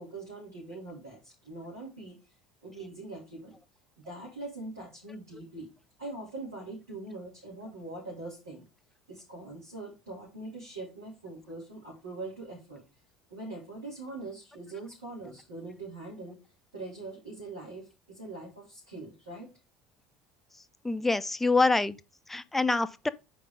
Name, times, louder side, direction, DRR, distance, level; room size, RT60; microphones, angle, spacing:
voice 1, 0.0-2.2 2.6-3.6 4.0-5.7 6.0-8.6 9.1-12.8 13.3-16.4 16.7-19.5, right 2 dB, 85° right, 3.5 m, -42 dB
voice 2, 20.8-22.0 22.3-23.1, left 3 dB, 10° left, 0.6 m, -25 dB
5.2 x 4.7 x 5.1 m
hypercardioid pair, 65°, 2 cm